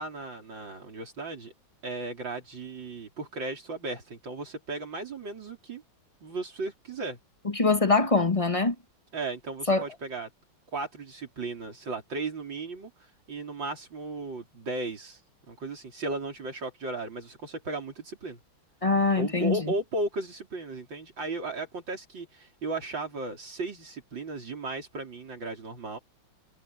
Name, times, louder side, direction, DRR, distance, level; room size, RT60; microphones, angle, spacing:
voice 1, 0.0-1.5 1.8-5.8 6.2-7.2 9.1-10.3 10.7-15.2 15.5-18.4 19.2-26.0, right 2 dB, 60° right, 4.8 m, -35 dB
voice 2, 7.5-8.7 9.7-9.9 18.8-19.7, left 3 dB, 20° left, 1.0 m, -23 dB
omnidirectional pair, 2.2 m